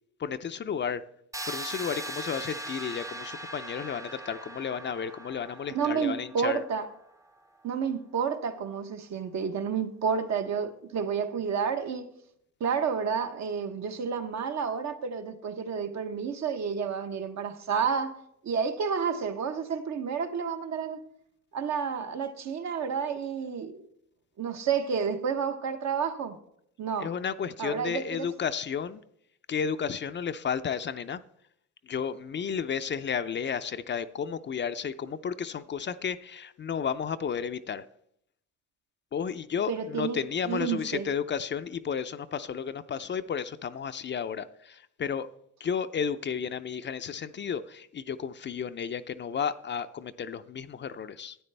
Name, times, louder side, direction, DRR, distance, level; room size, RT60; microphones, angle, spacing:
voice 1, 0.2-1.0 1.4-6.6 27.0-29.0 29.5-31.2 31.8-37.8 39.1-45.3 45.6-51.4, left 7 dB, 40° left, 0.5 m, -32 dB
sound 1, 1.3-7.1, right 2 dB, 10° right, 0.6 m, -40 dB
voice 2, 5.7-6.9 7.6-12.1 12.6-21.0 21.5-23.7 24.4-26.4 26.8-27.1 27.6-28.3 39.7-40.2 40.5-41.1, right 6 dB, 65° right, 1.0 m, -30 dB
12.5 x 9.2 x 3.3 m
cardioid pair, 90°, 30 cm